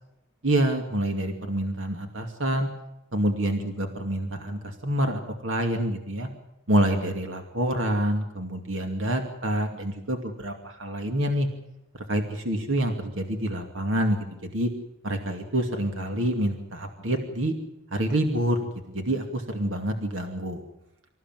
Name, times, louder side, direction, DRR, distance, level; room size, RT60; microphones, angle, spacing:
voice 1, 0.4-2.7 3.1-6.3 6.7-11.5 11.9-14.7 15.0-17.5 17.9-18.6 18.9-20.6, right 1 dB, 75° right, 5 dB, 2.5 m, -27 dB
26.0 x 15.0 x 9.2 m, 0.91 s
head